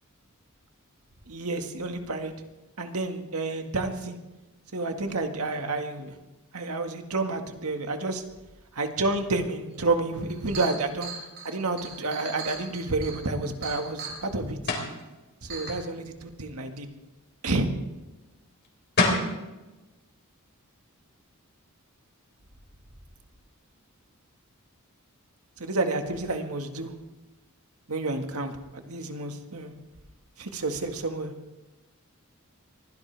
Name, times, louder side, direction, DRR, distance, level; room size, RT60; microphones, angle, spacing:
voice 1, 1.3-2.3 2.8-4.2 4.7-6.1 6.5-8.2 8.7-11.1 11.4-14.6 15.4-16.9 17.4-17.7 25.6-26.9 27.9-29.7 30.4-31.3, right 2 dB, 80° right, 5 dB, 1.8 m, -30 dB
Chink clink, 10.2-14.2 15.0-15.1 15.5-15.7, right 4 dB, 50° right, 5.3 m, -39 dB
sound 1, 14.7-15.0 18.6-18.7 19.0-19.3, left 3 dB, 50° left, 3.8 m, -24 dB
23.5 x 16.5 x 3.5 m, 1.1 s
head